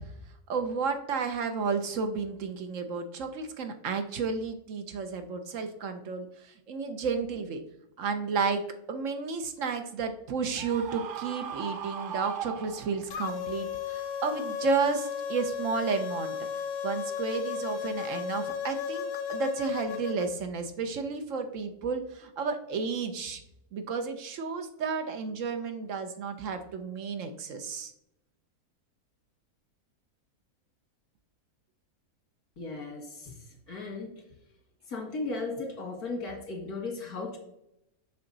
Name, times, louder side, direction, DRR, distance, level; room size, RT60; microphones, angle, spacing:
voice 1, 0.5-7.6 8.0-16.3 16.8-23.4 23.7-27.9, right 5 dB, 65° right, 7 dB, 1.0 m, -32 dB
Screaming, 10.6-13.2, right 8 dB, 85° right, 0.4 m, -38 dB
sound 1, 13.1-20.3, left 7 dB, 55° left, 0.7 m, -34 dB
voice 2, 32.6-34.2 34.9-37.4, left 3 dB, 90° left, 1 dB, 2.3 m, -36 dB
7.0 x 5.6 x 3.8 m, 0.81 s
omnidirectional pair, 1.6 m